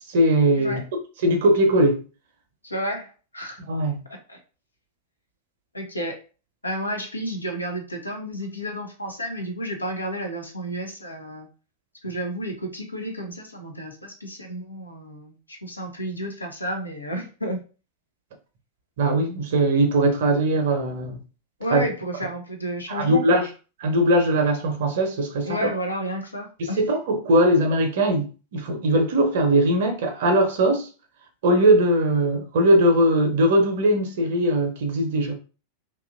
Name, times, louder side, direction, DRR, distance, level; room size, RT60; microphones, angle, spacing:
voice 1, 0.1-0.8 1.2-2.0 3.7-4.0 19.0-21.2 21.7-21.8 22.9-23.4 23.8-25.7 26.8-30.9 31.4-35.3, right 1 dB, 55° right, 0.7 m, -20 dB
voice 2, 2.6-3.6 4.1-4.4 5.7-6.2 6.6-11.5 12.0-17.6 21.6-23.5 25.4-26.9, equal, 80° left, 0.6 m, -31 dB
2.8 x 2.4 x 2.5 m
figure-of-eight pair, 90°, 0 cm